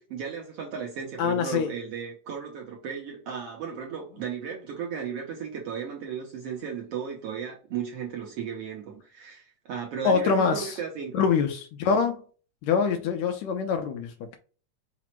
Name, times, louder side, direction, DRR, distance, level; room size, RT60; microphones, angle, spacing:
voice 1, 0.0-11.2, right 7 dB, 70° right, 1.5 m, -35 dB
voice 2, 1.2-1.7 10.0-10.7 11.1-12.2 12.6-14.4, left 6 dB, 80° left, 1.8 m, -25 dB
5.9 x 2.0 x 4.4 m
omnidirectional pair, 3.6 m